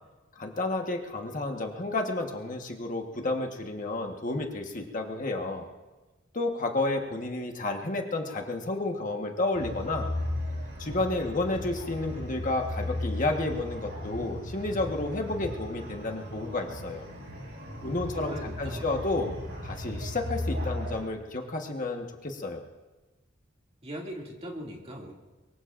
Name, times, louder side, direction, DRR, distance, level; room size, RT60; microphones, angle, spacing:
voice 1, 0.4-5.7 6.3-10.1 10.8-17.0 17.8-19.3 19.6-22.6, left 2 dB, 40° left, 2 dB, 1.4 m, -31 dB
sound 1, 9.5-21.0, left 1 dB, 60° right, 7.3 m, -36 dB
voice 2, 17.8-18.9 23.8-25.1, equal, 30° right, -1 dB, 2.5 m, -40 dB
23.5 x 23.0 x 2.6 m, 1.2 s
head